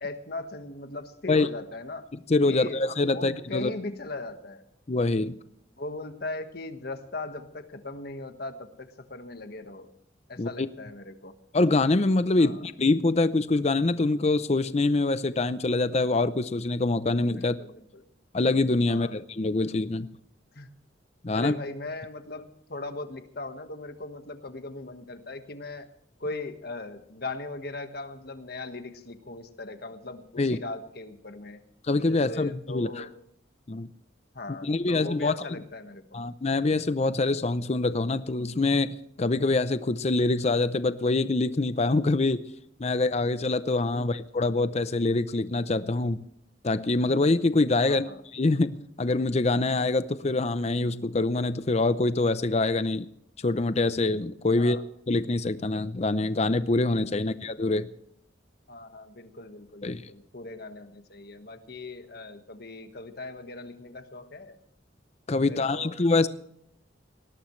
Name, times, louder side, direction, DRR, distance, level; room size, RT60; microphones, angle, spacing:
voice 1, 0.0-2.1 2.4-2.8 3.1-4.6 5.8-9.9 10.3-11.3 12.4-12.6 17.3-18.1 18.9-19.2 20.5-20.7 21.3-25.9 26.2-31.6 32.1-33.1 34.3-36.2 43.9-44.2 47.8-48.2 54.5-54.8 58.7-64.6 65.4-66.0, left 2 dB, 55° left, 8 dB, 1.5 m, -39 dB
voice 2, 2.3-3.7 4.9-5.3 10.4-10.7 11.5-17.6 18.3-20.1 21.2-21.5 30.4-30.6 31.8-33.0 33.7-33.9 34.6-35.3 36.1-42.4 42.8-46.2 46.6-53.1 53.4-54.8 55.1-57.9 59.8-60.0 65.3-66.3, left 2 dB, 35° left, 13 dB, 0.6 m, -25 dB
20.0 x 17.5 x 3.2 m, 0.71 s
head